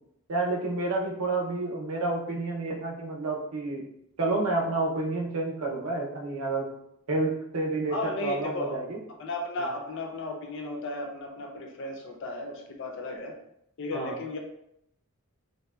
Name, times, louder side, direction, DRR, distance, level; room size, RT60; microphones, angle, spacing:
voice 1, 0.3-3.9 4.2-6.7 7.1-9.0 9.6-9.7 13.9-14.2, right 2 dB, 85° right, 0 dB, 0.5 m, -29 dB
voice 2, 7.9-13.3 13.8-14.4, left 2 dB, 60° left, 2 dB, 0.4 m, -35 dB
2.7 x 2.1 x 2.2 m, 0.77 s
head